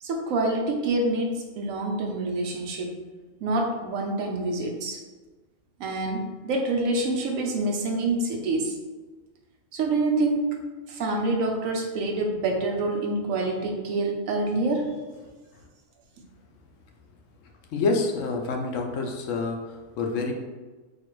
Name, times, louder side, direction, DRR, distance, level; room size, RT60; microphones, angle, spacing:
voice 1, 0.0-3.0 3.4-5.0 5.8-8.7 9.7-15.0, right 2 dB, 90° right, 2 dB, 1.1 m, -27 dB
voice 2, 17.7-20.3, left 3 dB, 75° left, 2 dB, 0.9 m, -27 dB
4.2 x 2.4 x 3.0 m, 1.3 s
omnidirectional pair, 1.4 m